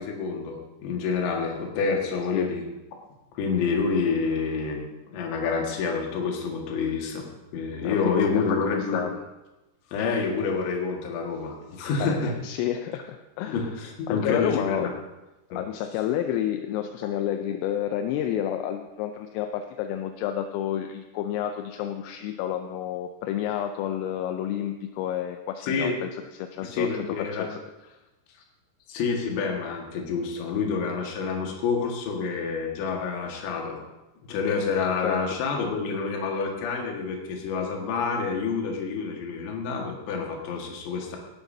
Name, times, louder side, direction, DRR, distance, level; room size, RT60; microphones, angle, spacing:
voice 1, 0.0-2.6 3.4-9.0 9.9-12.3 13.5-14.9 15.5-15.6 25.6-25.9 26.6-27.5 28.9-33.8 34.3-41.2, left 5 dB, 65° left, 0 dB, 3.7 m, -28 dB
voice 2, 7.8-8.4 8.7-9.2 12.0-13.6 14.1-14.9 15.6-26.9 27.2-27.5 35.0-35.2, left 10 dB, 85° left, 6 dB, 3.2 m, -30 dB
18.0 x 11.0 x 2.7 m, 1.0 s
omnidirectional pair, 5.9 m